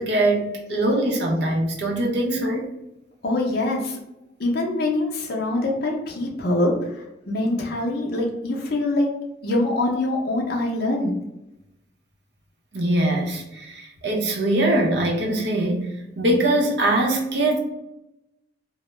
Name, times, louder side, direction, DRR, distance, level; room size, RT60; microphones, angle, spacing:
voice 1, 0.0-2.7 12.7-17.6, right 1 dB, 60° right, -1 dB, 0.6 m, -22 dB
voice 2, 3.2-4.0 4.4-9.1 9.4-11.2, left 2 dB, 50° left, -2 dB, 0.5 m, -24 dB
2.2 x 2.0 x 3.0 m, 0.89 s
head